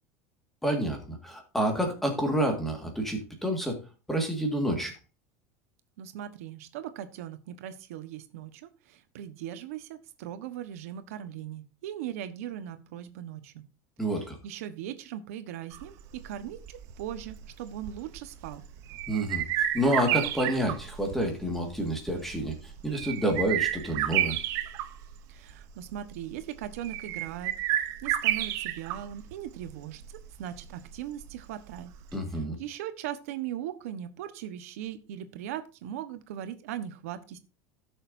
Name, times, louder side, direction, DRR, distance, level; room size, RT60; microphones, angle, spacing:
voice 1, 0.6-3.8 4.1-5.0 14.0-14.4 19.1-19.4 19.7-24.4 32.1-32.6, right 1 dB, 5° left, 3 dB, 1.9 m, -28 dB
voice 2, 6.0-13.6 14.1-18.6 25.3-27.5 28.0-31.9 32.6-37.4, right 11 dB, 90° right, 10 dB, 1.2 m, -39 dB
sound 1, 15.7-32.2, right 13 dB, 40° right, 0.8 m, -32 dB
16.5 x 6.5 x 2.7 m, 0.30 s
cardioid pair, 175°, 8 cm